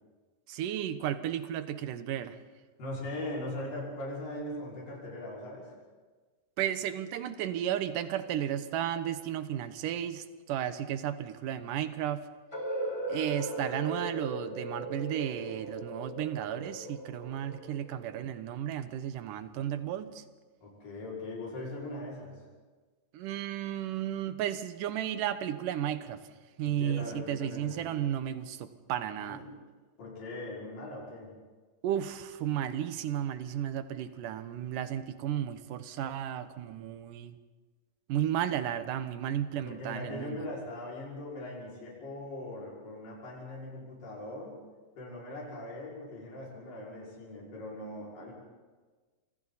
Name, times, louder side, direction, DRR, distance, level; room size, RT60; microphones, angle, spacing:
voice 1, 0.5-2.4 6.6-12.3 13.1-20.2 23.1-26.2 26.6-29.4 31.8-37.4 38.1-40.4, right 10 dB, 70° right, 10 dB, 2.6 m, -33 dB
voice 2, 2.8-5.7 20.6-22.4 26.6-27.8 29.2-29.5 30.0-31.3 39.5-44.6 45.0-48.3, left 1 dB, 70° left, -5 dB, 7.3 m, -40 dB
sound 1, 12.5-18.4, right 1 dB, 5° left, 2.9 m, -38 dB
29.5 x 25.5 x 4.2 m, 1.4 s
omnidirectional pair, 4.1 m